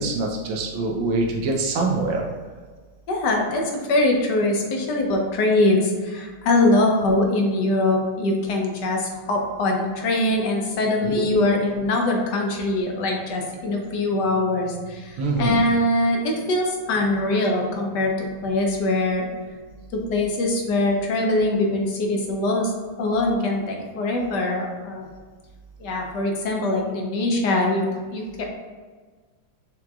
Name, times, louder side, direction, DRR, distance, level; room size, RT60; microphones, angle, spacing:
voice 1, 0.0-2.3 11.0-11.2 15.2-15.6, right 3 dB, 85° right, 0 dB, 1.5 m, -24 dB
voice 2, 3.1-19.3 19.9-22.7 23.0-25.1 25.8-27.8 28.1-28.5, left 2 dB, 70° left, 1 dB, 1.3 m, -22 dB
6.2 x 2.9 x 2.3 m, 1.4 s
omnidirectional pair, 2.0 m